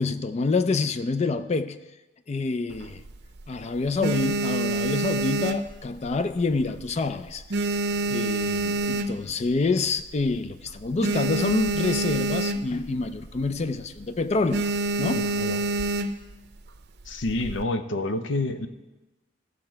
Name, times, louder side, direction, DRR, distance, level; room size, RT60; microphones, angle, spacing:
voice 1, 0.0-1.8 2.3-3.0 3.5-7.4 8.1-14.6 15.0-15.3, left 3 dB, 35° left, 0.4 m, -27 dB
sound 1, 2.7-3.4 3.8-6.3 6.6-7.0 7.3-9.5 10.0-10.1 10.3-10.4 10.7-12.9 13.2-13.5 13.8-14.1 14.5-16.3 17.1-17.6, right 2 dB, 65° right, 0.6 m, -27 dB
voice 2, 15.2-15.7 17.1-18.7, left 2 dB, 85° left, 0.7 m, -28 dB
15.0 x 6.5 x 4.5 m
head